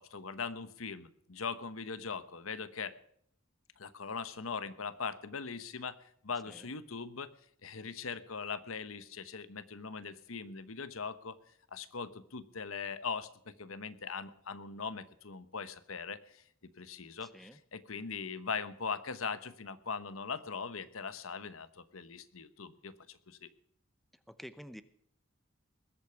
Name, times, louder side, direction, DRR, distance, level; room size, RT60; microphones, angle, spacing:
voice 1, 0.0-2.9 3.8-6.0 6.2-7.3 7.6-11.3 11.7-16.4 16.8-23.5, left 5 dB, 90° left, 14 dB, 1.1 m, -40 dB
voice 2, 17.2-17.6 24.3-24.8, equal, ahead, 12 dB, 0.8 m, -49 dB
20.5 x 8.6 x 5.8 m, 0.67 s
head